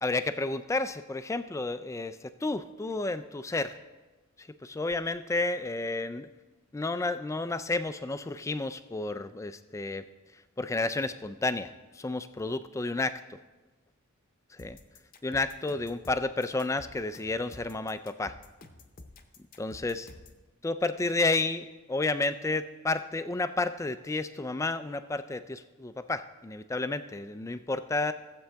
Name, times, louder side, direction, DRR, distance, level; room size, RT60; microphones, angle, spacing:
voice 1, 0.0-3.8 4.4-6.3 6.7-10.0 10.3-13.2 14.5-14.8 15.2-18.4 19.6-20.1 20.6-28.1, left 2 dB, 15° left, 11 dB, 0.3 m, -31 dB
sound 1, 14.6-20.4, left 2 dB, 40° left, 0.7 m, -50 dB
15.5 x 7.7 x 3.4 m, 1.2 s
head